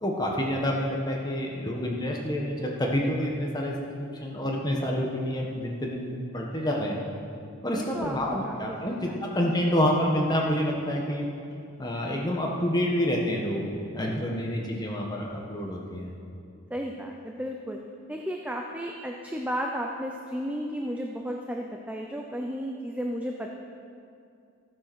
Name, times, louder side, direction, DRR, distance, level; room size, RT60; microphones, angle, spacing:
voice 1, 0.0-3.7 4.2-7.0 7.6-11.3 11.8-13.6 13.9-16.1, equal, 20° left, -1 dB, 1.5 m, -28 dB
voice 2, 7.7-8.8 9.1-9.6 16.7-17.8 18.1-23.5, equal, 5° right, 1 dB, 0.6 m, -34 dB
15.0 x 9.5 x 6.3 m, 2.4 s
head